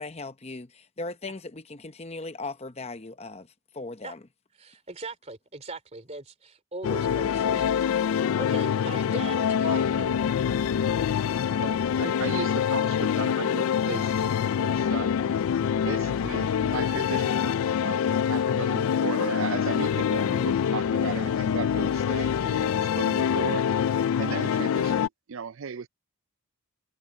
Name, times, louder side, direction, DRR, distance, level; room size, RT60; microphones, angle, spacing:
voice 1, 0.0-3.5 3.7-4.2, left 3 dB, 30° left, 0.8 m, -38 dB
voice 2, 4.6-7.8 8.1-10.3, right 3 dB, 30° right, 2.9 m, -40 dB
sound 1, 6.8-25.1, left 8 dB, 65° left, 0.3 m, -25 dB
voice 3, 11.6-14.3 14.6-15.1 15.8-25.9, right 5 dB, 60° right, 0.5 m, -36 dB
head